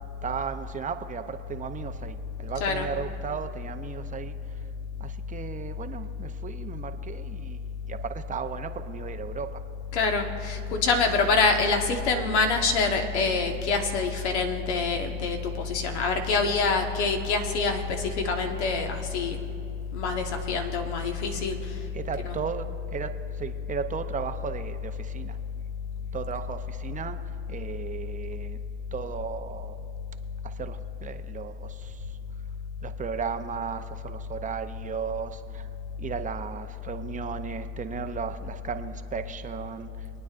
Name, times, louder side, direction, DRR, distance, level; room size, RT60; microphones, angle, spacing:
voice 1, 0.2-4.6 5.0-9.6 21.9-25.4 26.1-28.6 28.9-29.8 30.4-32.2 32.8-35.7 36.0-40.1, right 7 dB, 25° right, 8 dB, 0.5 m, -35 dB
voice 2, 9.9-19.4 19.9-21.7 22.2-22.4, left 4 dB, 80° left, 4 dB, 1.4 m, -26 dB
27.5 x 9.3 x 2.5 m, 2.7 s
supercardioid pair, 105°, 34 cm